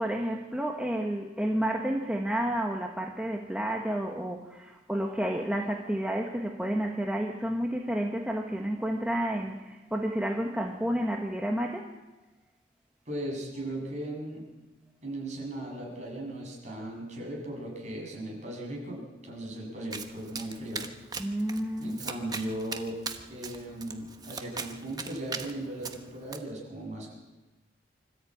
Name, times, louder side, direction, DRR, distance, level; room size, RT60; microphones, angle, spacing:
voice 1, 0.0-11.9 21.2-22.0, right 1 dB, 5° right, 1 dB, 1.3 m, -30 dB
voice 2, 13.1-14.4 15.0-20.8 21.8-23.0 23.3-27.1, right 1 dB, 40° right, -1 dB, 7.4 m, -37 dB
Domestic sounds home sounds, 19.9-26.4, right 4 dB, 20° right, 1.1 m, -40 dB
25.0 x 13.5 x 8.7 m, 1.1 s
head